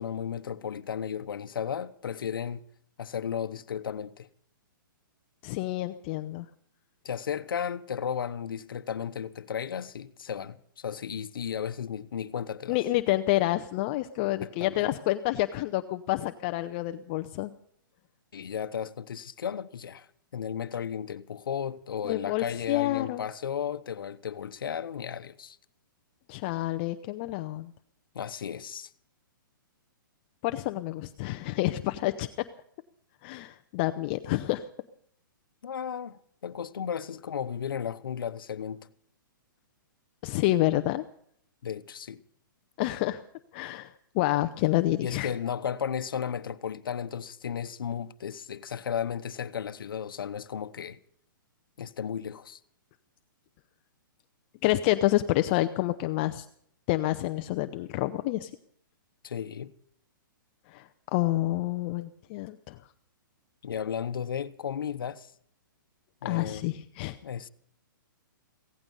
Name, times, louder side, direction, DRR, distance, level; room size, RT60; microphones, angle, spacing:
voice 1, 0.0-2.6 3.0-4.3 7.0-12.8 14.4-14.9 18.3-20.1 20.3-25.6 28.1-28.9 35.6-38.9 41.6-42.2 45.0-51.0 51.8-52.6 59.2-59.7 63.6-65.3 66.2-66.7 67.2-67.5, left 8 dB, 80° left, 0.9 m, -34 dB
voice 2, 5.4-6.5 12.7-17.5 22.0-23.2 26.3-27.7 30.4-32.3 33.2-34.6 40.2-41.0 42.8-43.2 43.5-45.3 54.6-56.4 56.9-58.5 60.7-62.8 66.2-67.2, left 16 dB, 30° left, 0.6 m, -28 dB
16.5 x 15.5 x 5.5 m
hypercardioid pair, 155°, 11 cm